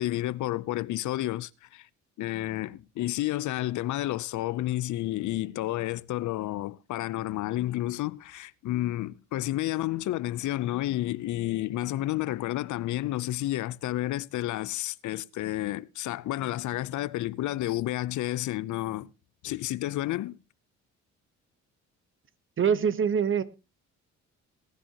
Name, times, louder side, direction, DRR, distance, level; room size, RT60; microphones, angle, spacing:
voice 1, 0.0-1.9 2.2-19.1 19.4-20.4, left 15 dB, 75° left, 0.6 m, -31 dB
voice 2, 22.6-23.4, right 7 dB, 40° right, 1.2 m, -24 dB
20.5 x 10.5 x 2.9 m
cardioid pair, 90°, 30 cm